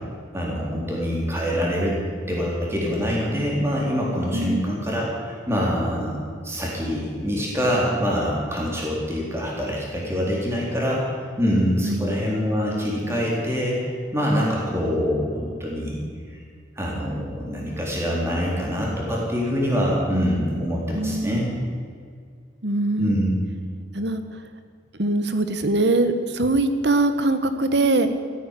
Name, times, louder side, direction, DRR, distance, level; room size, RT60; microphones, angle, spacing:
voice 1, 0.3-2.0 2.3-6.2 6.4-16.0 16.8-21.5 23.0-23.3, equal, 15° right, -4 dB, 3.9 m, -25 dB
voice 2, 4.3-4.7 11.8-12.1 20.9-21.4 22.6-23.2 23.9-24.4 25.0-28.1, right 2 dB, 60° right, 9 dB, 1.3 m, -22 dB
15.5 x 9.4 x 9.9 m, 2.1 s
head